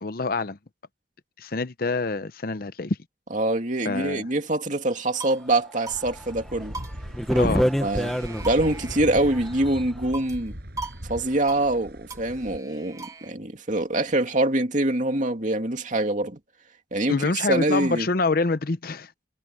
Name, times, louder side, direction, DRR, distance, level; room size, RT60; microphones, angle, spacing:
voice 1, 0.0-0.6 1.4-3.0 3.8-4.3 7.4-7.7 17.1-19.1, left 3 dB, 50° left, 0.8 m, -26 dB
voice 2, 3.3-6.8 7.3-8.1 8.4-10.6 11.1-16.4 16.9-18.1, right 1 dB, 45° right, 2.6 m, -25 dB
sound 1, 4.9-5.5 5.9-6.0 6.3-6.4 6.7-7.7 8.0-9.7 10.1-10.5 10.8-11.0 11.3-11.7 12.1-13.3, right 3 dB, 20° right, 1.5 m, -40 dB
sound 2, 5.9-12.6, equal, 60° right, 6.2 m, -39 dB
sound 3, 6.0-6.1 6.6-6.7 7.1-8.8 9.3-9.8, equal, ahead, 1.1 m, -25 dB
head